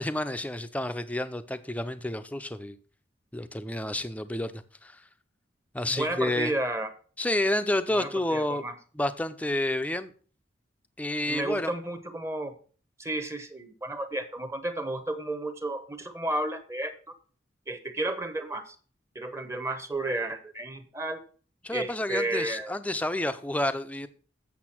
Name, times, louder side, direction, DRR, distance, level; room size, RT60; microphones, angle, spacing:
voice 1, 0.0-2.8 3.3-4.5 4.8-5.0 5.7-6.5 7.2-8.6 8.9-10.1 11.0-11.7 21.6-24.1, left 1 dB, 10° left, 0.5 m, -29 dB
voice 2, 5.9-6.9 7.9-8.7 11.3-12.5 13.0-16.9 17.7-18.8 19.1-21.2 21.7-22.8, right 1 dB, 15° right, 0.9 m, -32 dB
8.2 x 6.8 x 6.0 m
head